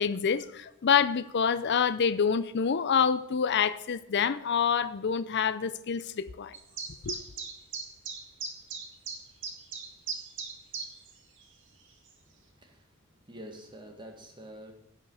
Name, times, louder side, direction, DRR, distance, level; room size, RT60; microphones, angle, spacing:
voice 1, 0.0-6.5 7.0-7.2, left 7 dB, 55° left, 0.5 m, -27 dB
sound 1, 6.5-11.1 11.4-11.5 12.1-12.2, right 5 dB, 60° right, 2.1 m, -37 dB
voice 2, 13.3-14.7, equal, 25° right, 1.9 m, -46 dB
16.5 x 5.7 x 6.4 m
head